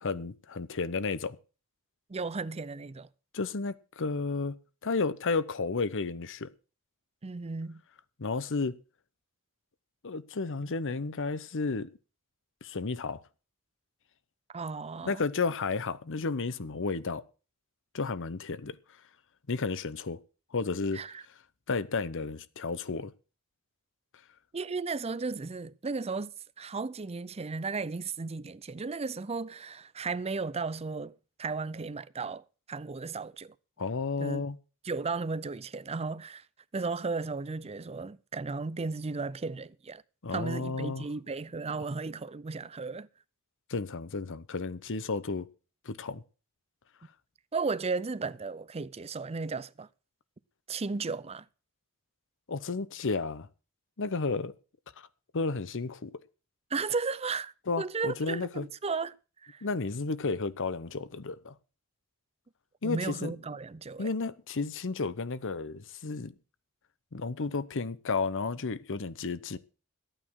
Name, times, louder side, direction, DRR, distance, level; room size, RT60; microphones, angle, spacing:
voice 1, 0.0-1.4 3.3-4.6 4.8-6.5 8.2-8.8 10.0-11.9 12.6-13.2 15.0-17.2 17.9-18.8 19.5-20.2 20.5-21.0 21.7-23.1 33.8-34.6 40.2-41.1 43.7-45.5 45.8-46.2 52.5-53.5 54.0-54.5 55.0-55.1 55.3-56.1 57.7-58.7 59.6-61.5 62.8-63.3 64.0-66.3 67.1-69.6, left 4 dB, 60° left, 0.8 m, -32 dB
voice 2, 2.1-3.1 7.2-7.8 14.5-15.2 20.9-21.2 24.5-31.1 31.4-33.5 34.2-34.4 34.8-36.4 36.7-40.0 40.3-43.1 47.5-49.9 50.7-51.4 56.7-59.1 59.4-59.7 62.8-64.1, right 4 dB, 30° right, 0.5 m, -35 dB
13.0 x 9.1 x 6.4 m
head